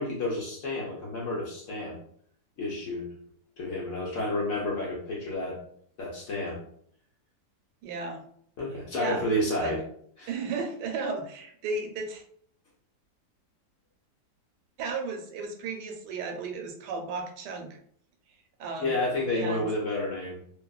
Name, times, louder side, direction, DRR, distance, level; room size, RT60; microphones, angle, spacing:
voice 1, 0.0-2.0 2.6-3.1 3.6-5.6 6.0-6.6 8.6-9.8 10.2-10.3 18.8-20.4, left 1 dB, 60° left, -4 dB, 0.9 m, -30 dB
voice 2, 7.8-8.2 8.9-9.2 9.6-9.7 10.3-12.2 14.8-17.8 18.6-19.0 19.3-19.7, right 4 dB, 85° right, 3 dB, 1.2 m, -34 dB
2.7 x 2.5 x 2.3 m, 0.64 s
omnidirectional pair, 1.8 m